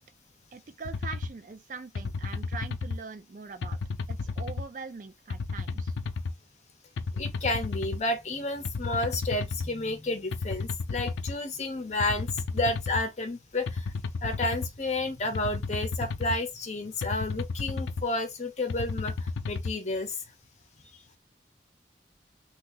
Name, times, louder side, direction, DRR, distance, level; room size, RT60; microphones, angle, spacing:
voice 1, 0.5-3.8 4.1-5.9, right 4 dB, 45° right, 0.4 m, -42 dB
sound 1, 0.9-1.3 2.0-3.0 3.6-4.7 5.3-6.3 7.0-8.0 8.7-9.7 10.3-11.4 12.0-13.0 13.7-14.7 15.3-16.4 17.0-18.1 18.7-19.7, left 4 dB, 90° left, 0.4 m, -32 dB
voice 2, 7.2-13.9 14.2-20.2, left 2 dB, 40° left, 0.7 m, -31 dB
2.8 x 2.3 x 3.8 m
head